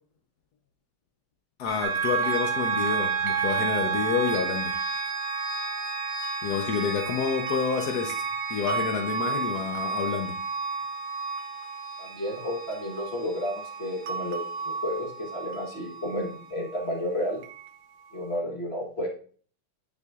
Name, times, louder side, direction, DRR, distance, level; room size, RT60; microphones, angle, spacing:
voice 1, 1.6-4.8 6.4-8.1 8.5-10.4, left 6 dB, 70° left, 4 dB, 0.9 m, -28 dB
sound 1, 1.7-15.5, left 2 dB, 20° left, 0.9 m, -40 dB
sound 2, 1.8-16.9 17.4-17.8, right 6 dB, 75° right, 1.2 m, -32 dB
voice 2, 12.0-17.4 18.1-19.1, left 1 dB, 40° left, 0 dB, 1.1 m, -32 dB
9.5 x 4.9 x 2.4 m, 0.43 s
omnidirectional pair, 2.4 m